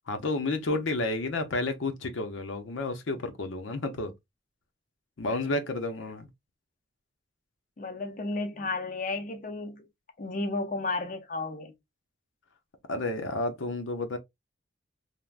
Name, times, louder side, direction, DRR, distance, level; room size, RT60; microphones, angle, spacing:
voice 1, 0.1-4.1 5.2-6.3 12.9-14.2, left 2 dB, 85° left, 0.6 m, -31 dB
voice 2, 7.8-9.9 10.2-11.7, left 3 dB, 45° left, 0.5 m, -33 dB
3.3 x 2.1 x 2.4 m
head